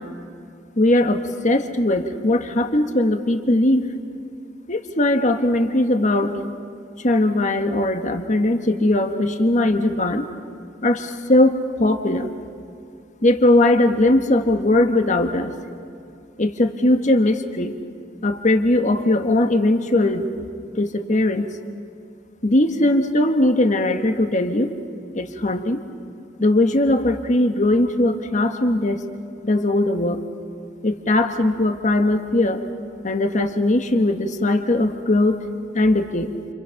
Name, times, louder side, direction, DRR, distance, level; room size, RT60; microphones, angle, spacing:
voice 1, 0.8-3.9 4.7-6.3 7.0-10.3 10.8-12.3 13.2-15.5 16.4-17.7 18.2-20.3 20.7-21.5 22.4-24.7 25.1-25.8 26.4-29.0 29.4-30.2 30.8-32.6 33.0-35.4 35.7-36.3, left 1 dB, 45° left, 6 dB, 1.5 m, -19 dB
29.0 x 29.0 x 5.8 m, 2.5 s
head